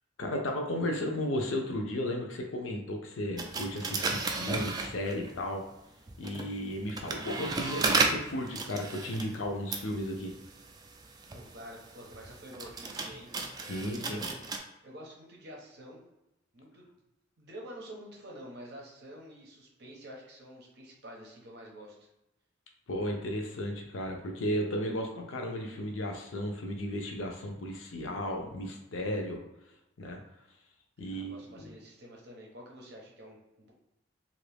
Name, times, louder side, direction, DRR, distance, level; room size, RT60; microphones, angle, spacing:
voice 1, 0.2-5.6 6.2-10.3 13.7-14.2 22.9-29.4 30.0-30.2 31.0-31.8, left 1 dB, 85° left, 2 dB, 0.6 m, -34 dB
sound 1, 3.4-5.4 6.1-14.6, right 3 dB, 20° right, 0.3 m, -34 dB
voice 2, 11.3-13.3 14.0-14.4 14.8-16.0 16.5-16.9 17.4-22.1 31.1-33.7, equal, 55° right, -2 dB, 0.8 m, -48 dB
2.8 x 2.5 x 3.4 m, 0.92 s
head